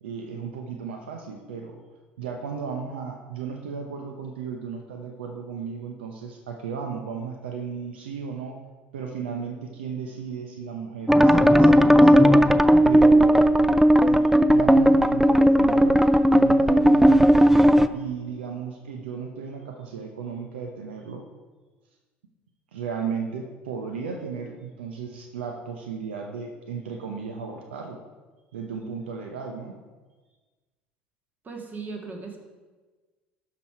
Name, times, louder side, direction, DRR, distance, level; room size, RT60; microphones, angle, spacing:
voice 1, 0.0-1.8 2.2-8.6 8.9-12.4 12.8-13.4 14.0-17.4 17.9-21.2 22.7-28.0 28.5-29.8, right 6 dB, 75° right, 3 dB, 0.8 m, -35 dB
sound 1, 11.1-17.9, equal, 5° right, 0.4 m, -16 dB
voice 2, 31.4-32.4, right 4 dB, 30° right, 2 dB, 1.8 m, -37 dB
12.0 x 4.8 x 4.6 m, 1.3 s
figure-of-eight pair, 65°, 6 cm